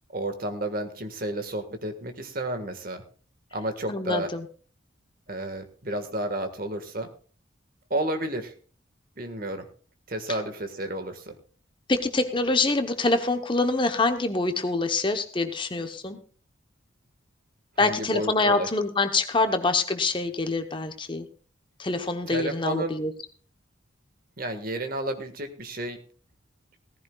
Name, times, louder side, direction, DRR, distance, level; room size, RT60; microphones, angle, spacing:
voice 1, 0.1-3.0 3.5-4.3 5.3-7.1 7.9-8.5 9.2-9.7 10.1-11.4 17.8-18.7 22.3-22.9 24.4-26.0, right 1 dB, 45° right, 7 dB, 1.6 m, -31 dB
voice 2, 3.9-4.4 11.9-16.2 17.8-21.3 21.8-23.1, left 3 dB, 25° left, 7 dB, 0.9 m, -25 dB
18.0 x 15.0 x 2.3 m, 0.40 s
head